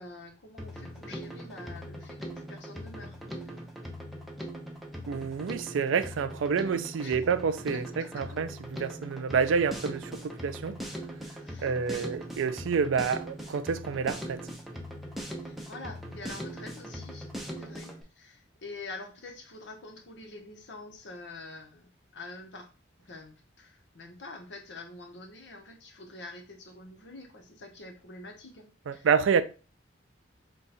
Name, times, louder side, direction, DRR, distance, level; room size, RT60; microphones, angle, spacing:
voice 1, 0.0-3.6 7.0-7.2 7.7-8.2 11.4-12.1 15.4-17.3 17.6-22.7 23.0-29.1, left 2 dB, 65° left, 0.9 m, -46 dB
Drum kit, 0.6-18.0, equal, ahead, 0.5 m, -40 dB
voice 2, 5.1-10.8 11.6-14.4 28.9-29.4, right 6 dB, 85° right, 0.4 m, -28 dB
3.6 x 2.3 x 4.1 m
head